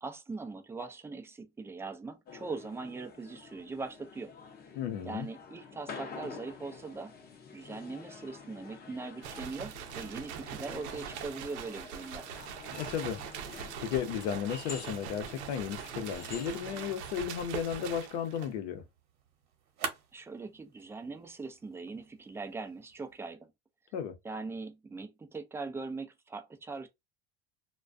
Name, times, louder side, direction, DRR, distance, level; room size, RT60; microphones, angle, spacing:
voice 1, 0.0-4.3 5.1-7.2 7.5-12.3 20.1-23.5 24.2-26.9, right 3 dB, 10° right, 0.3 m, -41 dB
sound 1, 2.3-16.9, left 5 dB, 30° left, 0.6 m, -48 dB
voice 2, 4.8-5.3 12.7-13.2 13.5-18.8 23.9-24.1, left 8 dB, 80° left, 0.7 m, -34 dB
sound 2, 9.2-18.6, right 8 dB, 85° right, 0.6 m, -42 dB
sound 3, 17.4-23.4, right 6 dB, 60° right, 0.9 m, -47 dB
2.3 x 2.2 x 2.4 m
supercardioid pair, 115°, 33 cm